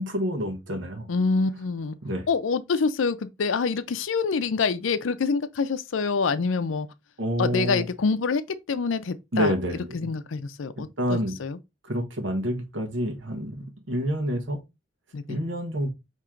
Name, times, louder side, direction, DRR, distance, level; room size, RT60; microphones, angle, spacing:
voice 1, 0.0-1.1 2.0-2.2 7.2-7.9 9.3-10.1 10.8-11.4 11.8-14.6 15.3-15.9, equal, 75° right, 1.1 m, -28 dB
voice 2, 1.1-2.0 2.3-6.9 7.4-8.4 8.7-9.5 9.9-11.6 15.1-15.4, left 4 dB, 85° left, 0.5 m, -26 dB
4.4 x 3.0 x 3.6 m
head